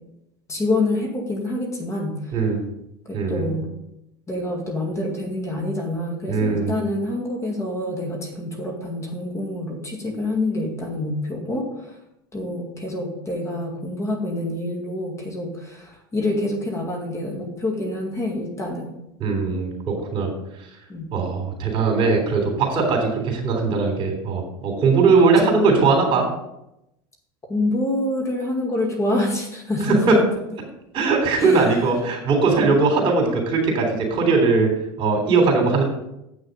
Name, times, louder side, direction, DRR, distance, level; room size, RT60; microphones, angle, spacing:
voice 1, 0.5-2.4 3.1-3.7 4.3-12.0 12.3-19.0 20.9-21.1 25.4-25.7 27.5-30.2 31.4-31.7 32.6-32.7, left 1 dB, 25° left, 1 dB, 2.0 m, -27 dB
voice 2, 3.1-3.5 6.3-6.7 19.2-20.3 21.1-26.3 29.9-30.0 30.9-34.7 35.0-35.8, right 4 dB, 45° right, 2 dB, 3.3 m, -20 dB
8.2 x 6.3 x 5.3 m, 0.85 s
hypercardioid pair, 95°, 13 cm